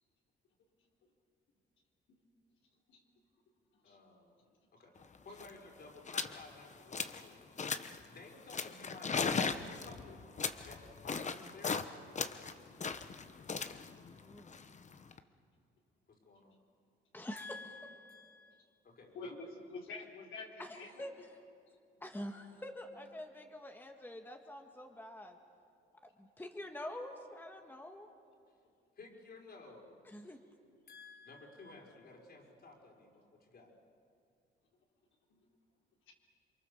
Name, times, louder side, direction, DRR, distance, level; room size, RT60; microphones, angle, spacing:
voice 1, 3.8-4.4 4.7-7.4 7.9-10.2 10.6-12.0 16.1-16.5 19.0-19.5 29.0-30.3 30.8-33.7, left 3 dB, 55° left, 0 dB, 5.6 m, -55 dB
sound 1, 5.0-5.1 5.3-5.6 6.1-6.4 6.7-7.3 7.6-8.0 8.5-11.9 12.2-15.2, left 5 dB, 35° left, 1.1 m, -37 dB
voice 2, 14.2-14.6 17.1-18.2 20.6-21.1 22.0-25.4 26.2-28.1 30.1-30.4, left 1 dB, 10° left, 3 dB, 1.8 m, -46 dB
voice 3, 19.7-21.1 35.3-35.4, left 4 dB, 80° left, -1 dB, 3.8 m, -47 dB
28.5 x 23.5 x 7.2 m, 2.4 s
cardioid pair, 90°, 20 cm